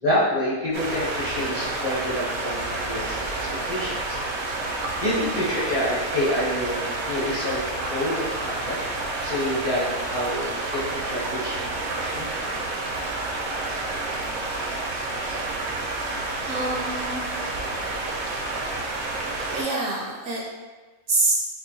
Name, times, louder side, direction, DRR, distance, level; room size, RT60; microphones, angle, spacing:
voice 1, 0.0-4.2 5.0-8.8 9.2-12.4, left 1 dB, 35° left, -9 dB, 0.6 m, -28 dB
sound 1, 0.7-19.6, right 2 dB, 85° right, 1.1 m, -29 dB
sound 2, 2.5-5.4, right 1 dB, 65° left, 1.3 m, -44 dB
voice 2, 16.5-17.3 19.5-20.4 21.1-21.3, right 2 dB, 65° right, -2 dB, 0.8 m, -26 dB
4.5 x 2.5 x 2.6 m, 1.3 s
omnidirectional pair, 1.5 m